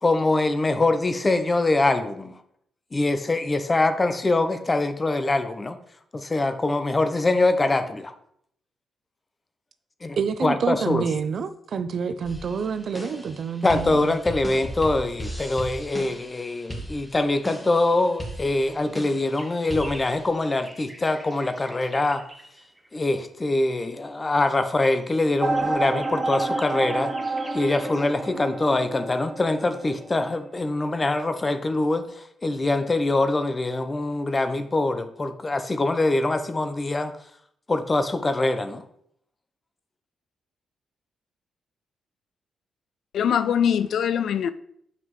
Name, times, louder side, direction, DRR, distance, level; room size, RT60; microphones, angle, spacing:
voice 1, 0.0-2.3 2.9-5.8 6.1-8.1 10.0-11.0 13.6-22.2 22.9-27.1 27.5-37.1 37.7-38.8, left 2 dB, 25° left, 0.7 m, -24 dB
voice 2, 10.2-14.2, right 6 dB, 60° right, 0.5 m, -28 dB
sound 1, 12.2-20.3, equal, 10° left, 1.9 m, -37 dB
sound 2, 19.0-23.1 24.2-24.6 24.9-28.3 28.6-28.7 29.0-29.1, right 1 dB, 10° right, 1.2 m, -47 dB
sound 3, 25.4-31.0, right 3 dB, 35° right, 1.0 m, -29 dB
voice 3, 43.1-44.5, left 8 dB, 75° left, 0.4 m, -22 dB
7.3 x 5.5 x 3.1 m
cardioid pair, 80°, 0 cm